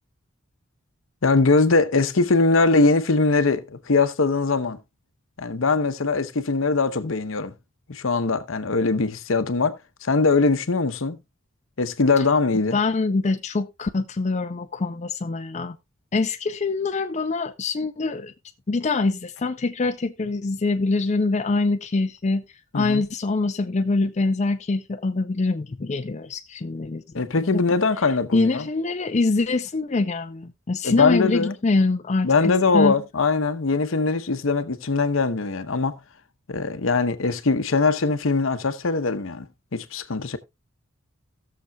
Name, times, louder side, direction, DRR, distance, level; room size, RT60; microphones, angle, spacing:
voice 1, 1.2-4.8 5.4-7.5 7.9-11.2 11.8-12.8 22.7-23.0 27.1-28.7 30.8-31.5 32.2-36.0 36.5-39.5 39.7-40.4, left 3 dB, 75° left, 0.8 m, -21 dB
voice 2, 12.7-15.8 16.1-18.3 18.7-22.4 22.7-27.0 27.4-27.6 28.3-33.0, left 3 dB, 35° left, 0.5 m, -24 dB
17.5 x 6.8 x 2.3 m
head